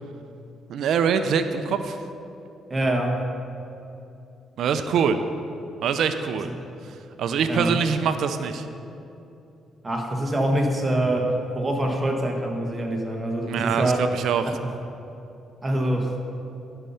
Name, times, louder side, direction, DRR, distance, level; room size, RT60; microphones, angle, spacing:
voice 1, 0.7-2.0 4.6-5.2 5.8-6.5 7.2-8.7 13.5-14.6, right 6 dB, 75° right, 9 dB, 0.5 m, -24 dB
voice 2, 2.7-3.3 6.4-6.5 7.5-7.7 9.8-14.1 14.4-14.7 15.6-16.2, right 1 dB, 20° right, 1 dB, 1.4 m, -25 dB
12.5 x 5.6 x 5.6 m, 2.8 s
cardioid pair, 90°, 0 cm